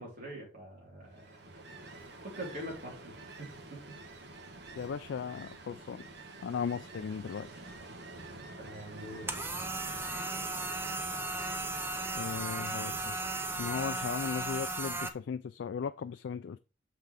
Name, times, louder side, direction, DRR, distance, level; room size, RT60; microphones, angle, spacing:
voice 1, 0.0-1.8 2.2-3.8 8.6-9.3, equal, 50° right, 3.8 m, -44 dB
Ocean, 1.1-15.2, right 2 dB, 65° right, 1.1 m, -48 dB
voice 2, 4.8-6.1 6.4-7.5 12.1-13.1 13.6-16.6, left 6 dB, 85° left, 0.3 m, -37 dB
sound 1, 9.3-15.1, right 2 dB, 15° right, 0.7 m, -36 dB
6.6 x 6.0 x 3.4 m
head